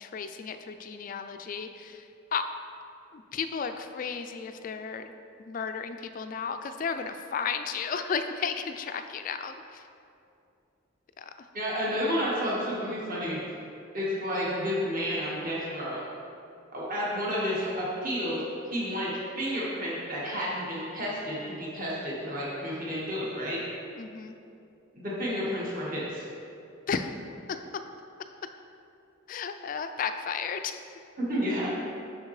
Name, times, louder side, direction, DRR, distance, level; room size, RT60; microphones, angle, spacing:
voice 1, 0.0-2.1 2.3-2.5 3.1-5.1 5.5-9.8 11.2-11.5 23.9-24.4 26.9-27.1 27.5-27.9 29.3-30.8, left 6 dB, 40° left, 8 dB, 0.3 m, -34 dB
voice 2, 11.5-13.4 13.9-16.0 16.7-18.4 18.7-23.6 24.9-26.2 31.2-31.7, equal, 45° right, -6 dB, 1.6 m, -31 dB
6.9 x 6.4 x 3.2 m, 2.6 s
head